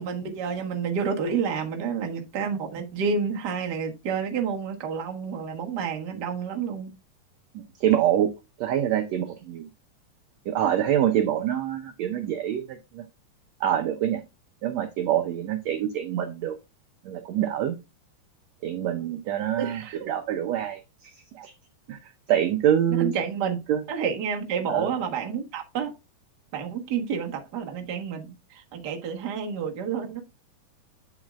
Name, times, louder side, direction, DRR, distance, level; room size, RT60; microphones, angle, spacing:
voice 1, 0.0-6.9 19.6-20.0 21.4-21.5 22.9-23.6 23.9-25.9 26.5-30.2, right 6 dB, 50° right, 1.2 m, -29 dB
voice 2, 7.5-8.3 8.6-9.7 10.5-13.0 13.6-14.2 14.6-16.5 17.0-17.8 18.6-21.1 21.4-21.5 21.9-22.0 22.3-23.1 23.7-23.8 24.7-24.9, right 10 dB, 80° right, 1.5 m, -25 dB
8.7 x 7.2 x 2.4 m
omnidirectional pair, 3.9 m